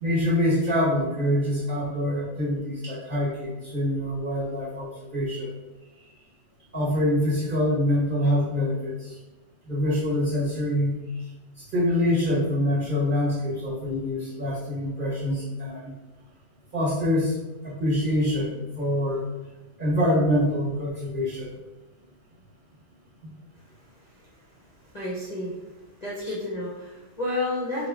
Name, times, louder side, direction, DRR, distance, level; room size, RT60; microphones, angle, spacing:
voice 1, 0.0-5.5 6.7-9.1 9.7-11.0 11.7-16.0 16.7-17.3 17.6-19.3 19.8-21.5 23.2-23.3 26.2-26.3, left 1 dB, 30° right, -8 dB, 1.8 m, -25 dB
voice 2, 23.9-25.7 26.0-27.9, left 2 dB, 30° left, -7 dB, 0.9 m, -32 dB
4.9 x 2.9 x 3.7 m, 1.1 s
omnidirectional pair, 1.8 m